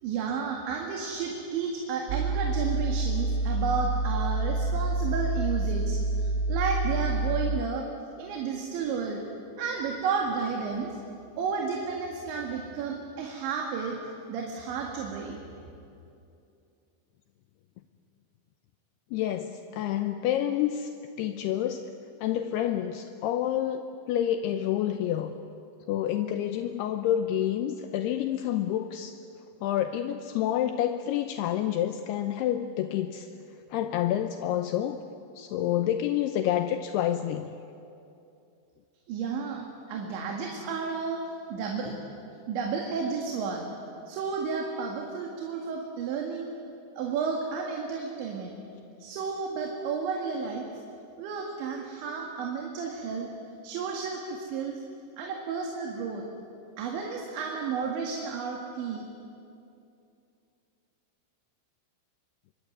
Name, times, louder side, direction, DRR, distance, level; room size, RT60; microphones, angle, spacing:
voice 1, 0.0-7.9 8.2-9.2 9.6-10.9 11.4-14.0 14.3-15.4 39.1-41.2 41.5-41.9 42.5-43.7 44.1-46.5 47.0-48.6 49.0-50.7 51.2-53.3 53.6-54.8 55.2-56.2 56.8-59.1, right 5 dB, 70° right, 0 dB, 4.2 m, -32 dB
sound 1, 2.1-7.6, right 2 dB, 90° right, 3.4 m, -27 dB
voice 2, 19.1-20.9 21.2-21.9 22.2-25.3 25.9-29.2 29.6-33.3 33.7-35.0 35.4-37.5, left 11 dB, 80° left, 7 dB, 2.4 m, -28 dB
25.0 x 24.0 x 9.4 m, 2.7 s
omnidirectional pair, 5.5 m